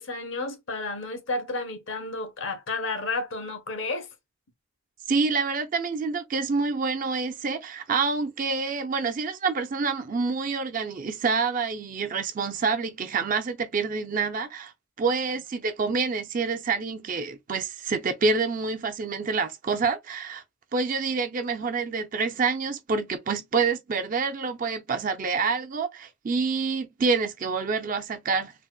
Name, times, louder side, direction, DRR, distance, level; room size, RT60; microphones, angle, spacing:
voice 1, 0.0-4.1, left 3 dB, 60° left, 0.8 m, -31 dB
voice 2, 5.1-14.7 15.0-20.4 20.7-28.5, right 4 dB, 40° right, 0.4 m, -27 dB
3.9 x 2.1 x 2.2 m
head